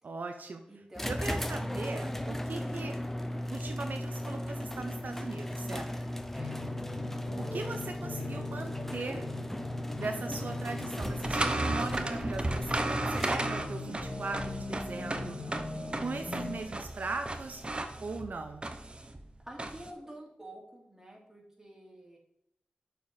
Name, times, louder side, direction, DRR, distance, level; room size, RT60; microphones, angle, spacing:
voice 1, 0.0-0.6 1.1-3.0 3.5-5.9 7.4-9.3 10.0-15.4 16.0-17.6 18.0-18.7, right 3 dB, 70° right, 5 dB, 0.6 m, -39 dB
voice 2, 0.7-1.3 5.6-6.6 18.9-19.1 19.4-22.2, right 1 dB, 15° right, -2 dB, 2.7 m, -49 dB
sound 1, 0.9-13.7, left 1 dB, 10° left, 0.6 m, -37 dB
sound 2, 6.4-16.6, left 3 dB, 50° left, 1.7 m, -41 dB
sound 3, 11.0-19.9, right 2 dB, 35° right, 0.8 m, -35 dB
6.6 x 4.6 x 5.4 m, 0.82 s
cardioid pair, 55°, 3 cm